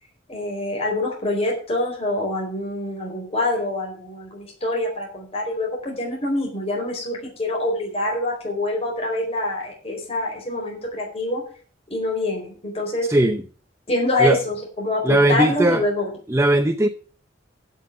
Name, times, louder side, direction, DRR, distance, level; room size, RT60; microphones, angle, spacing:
voice 1, 0.3-11.4 11.9-13.1 13.9-16.0, left 1 dB, 35° left, 4.3 m, -25 dB
voice 2, 13.1-13.4 14.2-14.4 15.0-15.8 16.3-16.9, right 1 dB, 15° right, 0.7 m, -18 dB
15.5 x 5.8 x 7.1 m
head